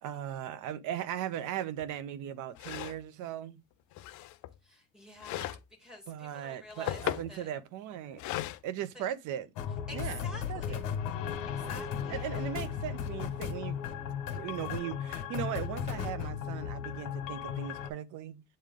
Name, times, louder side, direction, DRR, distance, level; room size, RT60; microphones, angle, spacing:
voice 1, 0.0-3.6 6.1-8.2 8.6-9.5 9.9-10.2 10.5-10.8 11.6-13.9 14.3-18.4, right 10 dB, 70° right, 0.8 m, -38 dB
sound 1, 1.8-1.9 2.6-3.0 3.9-4.6 5.2-5.7 6.5-7.4 8.2-8.6, left 15 dB, 65° left, 0.6 m, -37 dB
voice 2, 4.6-7.0 7.3-7.5 8.9-9.1 9.9-10.8 11.5-12.4, left 1 dB, ahead, 2.7 m, -48 dB
sound 2, 9.6-17.9, left 8 dB, 85° left, 1.4 m, -36 dB
7.9 x 3.3 x 3.7 m
cardioid pair, 155°, 32 cm